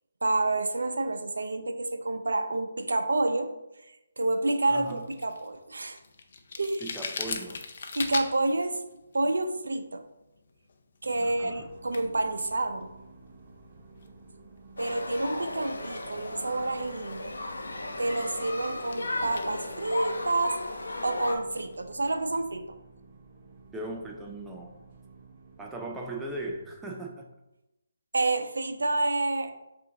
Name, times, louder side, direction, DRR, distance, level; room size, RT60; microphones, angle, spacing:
voice 1, 0.2-3.5 4.2-6.0 6.6-6.9 7.9-8.8 9.1-10.0 11.0-12.9 14.8-17.3 18.0-20.6 21.0-22.6 28.1-29.5, right 2 dB, 85° right, 8 dB, 0.5 m, -28 dB
voice 2, 4.7-5.0 6.8-7.6 11.2-11.7 23.7-24.8 25.6-27.3, right 2 dB, 5° right, 0 dB, 0.3 m, -38 dB
sound 1, 4.8-22.3, left 4 dB, 50° left, 0.5 m, -44 dB
sound 2, 11.0-26.8, right 3 dB, 30° right, 0.7 m, -52 dB
sound 3, 14.8-21.4, left 2 dB, 85° left, 0.8 m, -35 dB
5.6 x 2.5 x 3.6 m, 0.95 s
hypercardioid pair, 165°, 0 cm